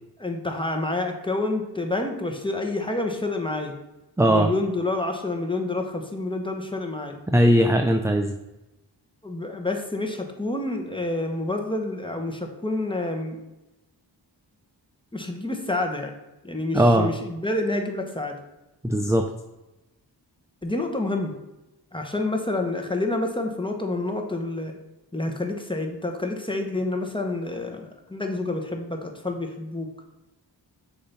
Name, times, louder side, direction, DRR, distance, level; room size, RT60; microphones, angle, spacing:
voice 1, 0.2-3.7 4.3-7.2 9.2-13.4 15.1-16.1 16.4-18.4 20.6-21.3 21.9-24.7 25.1-29.9, left 2 dB, 10° left, 3 dB, 1.1 m, -28 dB
voice 2, 4.2-4.5 7.3-8.3 16.7-17.1 18.8-19.2, right 1 dB, 5° right, 5 dB, 0.4 m, -19 dB
6.5 x 2.8 x 5.7 m, 1.0 s
cardioid pair, 40°, 45 cm